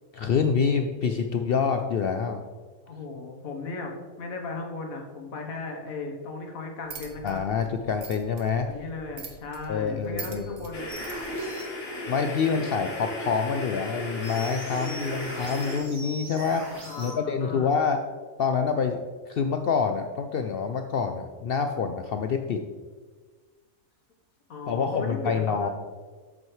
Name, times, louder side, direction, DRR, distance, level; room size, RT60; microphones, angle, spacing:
voice 1, 0.1-2.4 7.2-8.7 9.7-10.6 12.1-18.0 18.4-19.0 19.3-22.6 24.7-25.7, left 6 dB, 70° left, 6 dB, 0.5 m, -26 dB
voice 2, 2.9-7.5 8.7-10.9 16.8-17.8 24.5-25.7, left 3 dB, 85° left, 2 dB, 1.6 m, -36 dB
sound 1, 6.8-11.4, right 5 dB, 80° right, 1.4 m, -44 dB
sound 2, 10.7-15.8, left 1 dB, 45° left, 1.7 m, -35 dB
sound 3, 10.9-11.7 14.2-17.1, right 1 dB, 60° right, 2.3 m, -41 dB
7.6 x 7.6 x 3.2 m, 1.4 s
omnidirectional pair, 1.4 m